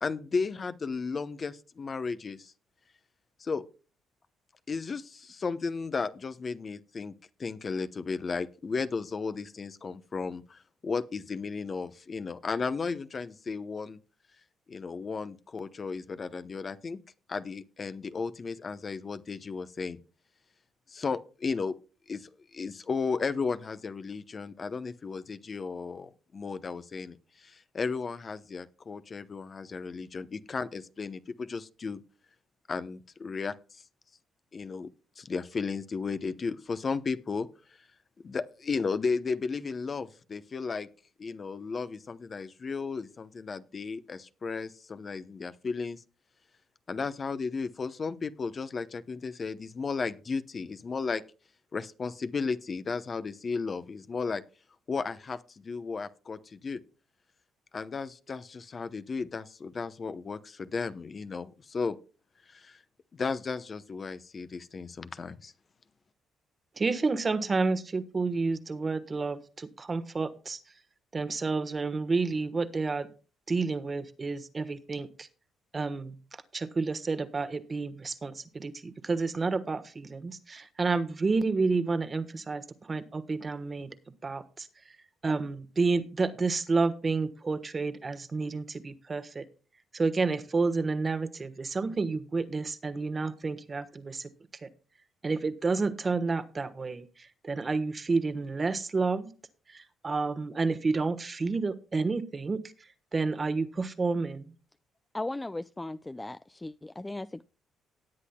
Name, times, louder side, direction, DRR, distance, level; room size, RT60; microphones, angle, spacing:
voice 1, 0.0-2.5 3.4-3.6 4.7-7.1 7.4-14.0 14.7-17.0 17.3-20.0 20.9-21.7 22.1-32.0 32.7-33.8 34.5-34.9 35.2-37.5 38.2-40.9 41.2-46.0 46.9-51.2 51.7-54.4 54.9-56.8 57.7-62.0 62.5-62.8 63.1-65.5, left 4 dB, 40° left, 0.8 m, -34 dB
voice 2, 66.8-70.6 71.1-73.1 73.5-75.3 75.7-83.9 84.2-84.7 85.2-89.4 89.9-94.3 94.6-94.7 95.2-99.3 99.7-102.6 103.1-104.5, right 4 dB, 35° right, 1.2 m, -30 dB
voice 3, 105.1-107.4, left 2 dB, 15° left, 0.4 m, -37 dB
18.5 x 8.3 x 2.3 m
supercardioid pair, 65°, 0 cm